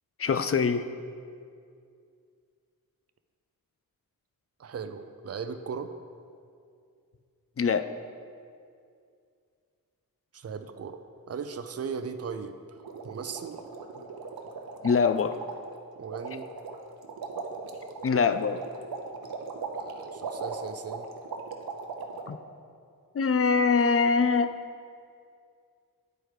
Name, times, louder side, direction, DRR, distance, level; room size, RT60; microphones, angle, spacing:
voice 1, 0.2-0.9 7.6-7.9 14.8-15.4 18.0-18.6 22.3-22.4 23.1-24.6, left 5 dB, 40° left, 11 dB, 0.4 m, -23 dB
voice 2, 4.6-5.9 10.3-11.0 11.3-13.6 16.0-16.5 19.7-21.1, right 6 dB, 45° right, 9 dB, 0.5 m, -38 dB
sound 1, 12.8-22.3, right 4 dB, 80° right, 0.7 m, -38 dB
9.1 x 4.6 x 4.9 m, 2.3 s
cardioid pair, 50°, 36 cm